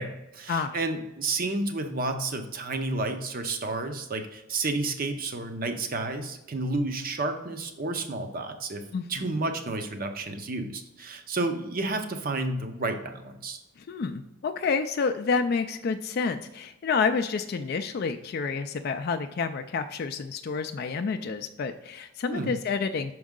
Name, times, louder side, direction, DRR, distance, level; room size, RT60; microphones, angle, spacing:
voice 1, 0.0-8.8 9.1-13.6 22.3-22.5, right 2 dB, 45° right, 7 dB, 0.7 m, -31 dB
voice 2, 8.9-9.3 13.8-23.1, left 5 dB, 50° left, 8 dB, 0.3 m, -29 dB
6.2 x 4.7 x 3.7 m, 0.92 s
head